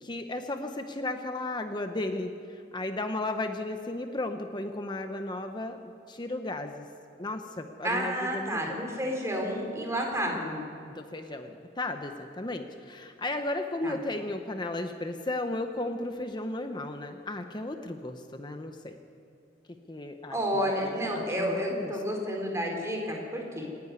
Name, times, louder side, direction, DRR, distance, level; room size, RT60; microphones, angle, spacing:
voice 1, 0.0-5.8 6.1-6.8 7.2-8.8 10.9-19.0 19.9-21.9, left 2 dB, 25° left, 6 dB, 0.9 m, -35 dB
voice 2, 7.8-10.6 13.8-14.0 20.3-23.7, equal, 15° right, 0 dB, 4.0 m, -30 dB
26.5 x 11.0 x 9.7 m, 2.6 s
head